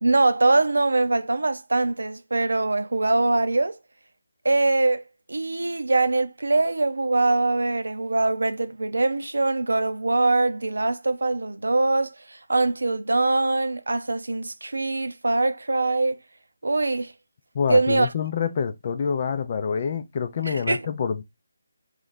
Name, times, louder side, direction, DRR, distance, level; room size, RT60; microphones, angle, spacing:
voice 1, 0.0-3.8 4.4-5.0 5.3-16.2 16.6-17.1 17.7-18.1 20.4-20.9, right 2 dB, 85° right, 0.6 m, -23 dB
voice 2, 17.5-21.2, left 6 dB, 35° left, 0.4 m, -26 dB
3.1 x 3.1 x 3.9 m
figure-of-eight pair, 165°, 0 cm